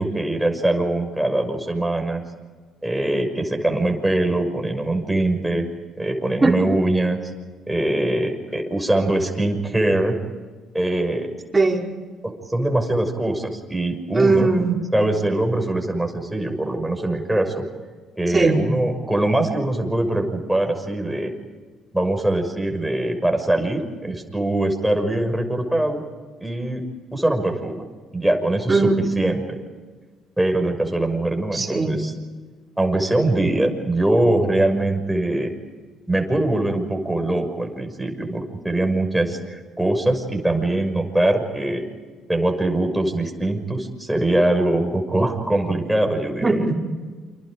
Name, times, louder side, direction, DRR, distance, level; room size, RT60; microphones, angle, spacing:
voice 1, 0.0-2.2 2.8-5.7 6.0-7.2 7.7-10.2 10.7-11.3 12.2-14.5 14.9-17.7 18.2-21.3 21.9-26.0 26.4-26.8 27.1-27.9 28.1-28.9 29.2-29.6 30.4-32.1 32.8-35.5 36.1-41.8 42.3-46.7, right 1 dB, 5° right, 2 dB, 6.2 m, -22 dB
voice 2, 11.5-11.9 14.1-14.8 18.3-18.6 28.7-29.0 31.5-32.0 46.4-46.8, right 3 dB, 20° right, -1 dB, 5.3 m, -19 dB
29.0 x 26.5 x 5.1 m, 1.4 s
hypercardioid pair, 55°, 0 cm